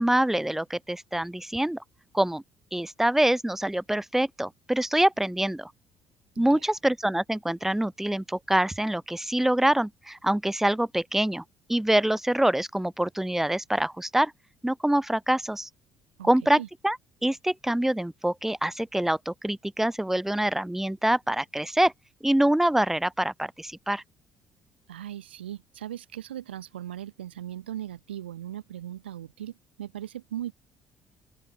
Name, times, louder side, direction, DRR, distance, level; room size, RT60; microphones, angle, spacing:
voice 1, 0.0-1.8 2.1-2.4 2.7-5.7 6.4-11.4 11.7-14.3 14.6-15.7 16.2-17.0 17.2-21.9 22.2-24.0, right 1 dB, 5° right, 1.3 m, -25 dB
voice 2, 24.9-30.5, right 11 dB, 80° right, 1.4 m, -38 dB
open air
figure-of-eight pair, 50°, 6 cm